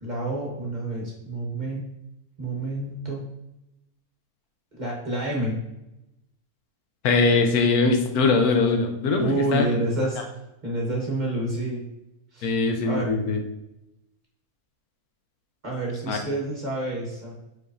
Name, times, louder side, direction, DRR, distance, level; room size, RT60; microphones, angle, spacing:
voice 1, 0.0-1.8 2.4-3.3 4.7-5.6 9.1-10.2 10.6-11.8 12.3-12.5 12.8-13.1 15.6-17.3, right 2 dB, 35° right, -3 dB, 1.1 m, -28 dB
voice 2, 7.0-9.7 12.4-13.4 16.1-16.2, left 3 dB, 85° left, 4 dB, 1.2 m, -21 dB
4.8 x 4.0 x 2.6 m, 0.89 s
omnidirectional pair, 1.6 m